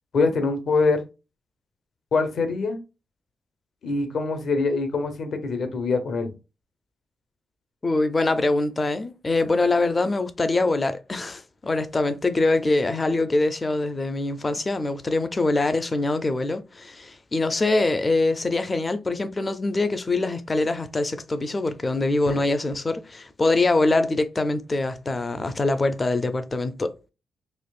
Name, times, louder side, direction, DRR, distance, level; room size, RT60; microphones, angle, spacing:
voice 1, 0.1-1.1 2.1-2.8 3.8-6.3 22.3-22.4, left 4 dB, 60° left, 0.8 m, -24 dB
voice 2, 7.8-27.1, left 2 dB, 25° left, 0.4 m, -24 dB
4.3 x 2.7 x 2.3 m
wide cardioid pair, 140°, 0 cm